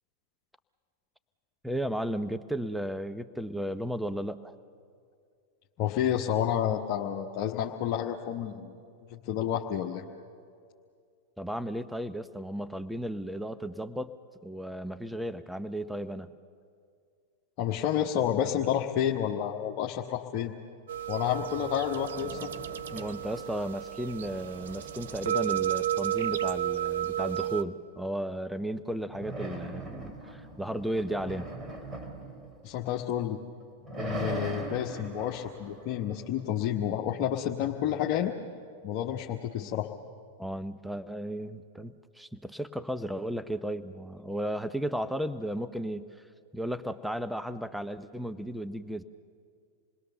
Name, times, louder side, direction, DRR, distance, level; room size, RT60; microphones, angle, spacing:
voice 1, 1.6-4.6 11.4-14.1 14.4-16.3 22.9-31.5 40.4-46.2 46.5-49.0, right 1 dB, ahead, 12 dB, 0.7 m, -34 dB
voice 2, 5.8-8.7 9.1-10.0 17.6-20.5 21.1-22.4 32.6-33.4 34.0-38.3 38.8-39.9, left 10 dB, 50° left, 0 dB, 1.2 m, -30 dB
sound 1, 20.9-27.6, right 12 dB, 70° right, 0.8 m, -32 dB
sound 2, 22.0-23.7 24.0-26.8 29.1-33.2 33.6-36.7, right 2 dB, 20° right, 3.4 m, -41 dB
27.5 x 20.5 x 6.8 m, 2.3 s
hypercardioid pair, 100°, 0 cm